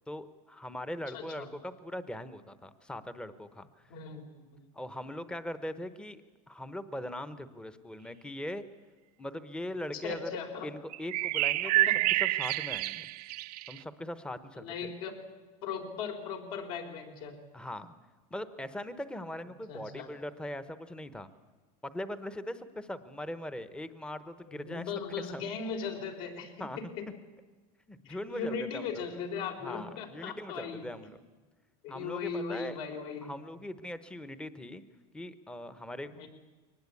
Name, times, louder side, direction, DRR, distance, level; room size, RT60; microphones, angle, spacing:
voice 1, 0.1-3.7 4.7-6.2 6.5-8.6 9.2-10.3 10.6-11.9 12.2-13.1 13.7-14.6 17.5-17.9 18.3-21.3 21.8-24.9 25.3-25.4 26.6-26.8 27.9-29.1 29.6-31.2 31.9-32.7 33.2-34.8 35.1-36.3, left 1 dB, 5° left, 12 dB, 0.9 m, -40 dB
voice 2, 1.1-1.5 3.9-4.7 9.9-10.7 11.6-12.0 14.6-15.2 15.6-17.4 19.7-20.1 24.5-27.1 28.0-30.9 31.8-33.3 36.2-36.3, left 5 dB, 70° left, 4 dB, 4.0 m, -38 dB
sound 1, 10.9-13.8, right 17 dB, 80° right, 0.8 m, -28 dB
22.5 x 19.5 x 8.4 m, 1.4 s
supercardioid pair, 140°, 20 cm